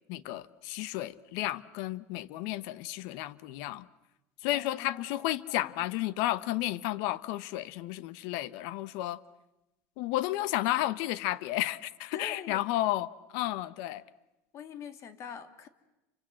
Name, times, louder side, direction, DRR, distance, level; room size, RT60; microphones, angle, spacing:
voice 1, 0.1-3.9 4.4-9.2 10.0-14.0, left 15 dB, 70° left, 1.0 m, -32 dB
voice 2, 4.5-5.9 12.1-12.6 14.5-15.7, left 7 dB, 45° left, 2.6 m, -45 dB
29.5 x 25.0 x 7.7 m
supercardioid pair, 115°, 7 cm